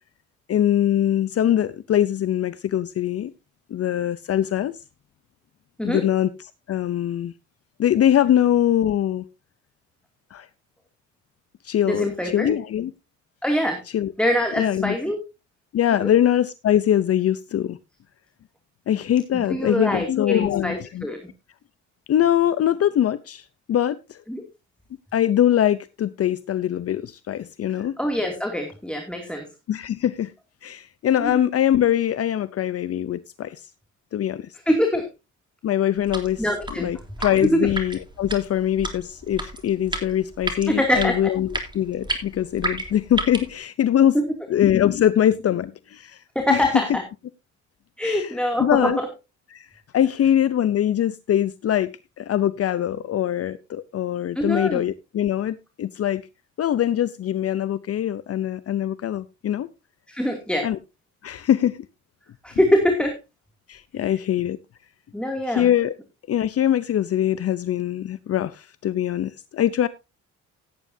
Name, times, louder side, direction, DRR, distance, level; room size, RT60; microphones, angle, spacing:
voice 1, 0.5-3.3 3.7-4.8 5.8-7.3 7.8-9.2 10.3-10.5 11.6-12.9 13.9-14.1 14.6-15.0 15.7-17.8 18.9-21.1 22.1-24.2 25.1-28.0 29.7-30.3 30.6-33.7 34.1-34.5 35.6-36.4 36.8-44.1 44.5-46.2 46.5-46.6 48.0-49.0 49.5-49.7 49.9-51.9 52.2-56.2 56.6-59.7 60.6-60.8 61.2-61.8 63.7-64.6 65.4-65.9 66.3-69.9, left 11 dB, 50° left, 15 dB, 0.7 m, -22 dB
voice 2, 11.9-12.5 13.4-13.8 14.2-15.2 16.0-16.1 19.3-21.2 24.3-24.4 28.0-29.5 31.2-31.4 34.7-35.1 36.4-36.9 37.5-37.6 40.7-41.3 44.1-44.2 46.3-47.0 48.0-49.1 54.4-54.8 60.1-60.7 62.4-63.2 65.1-65.7, equal, 5° left, 3 dB, 2.5 m, -23 dB
sound 1, 36.0-43.5, right 1 dB, 15° right, 3.5 m, -32 dB
16.5 x 9.5 x 2.7 m, 0.26 s
cardioid pair, 90°, 30 cm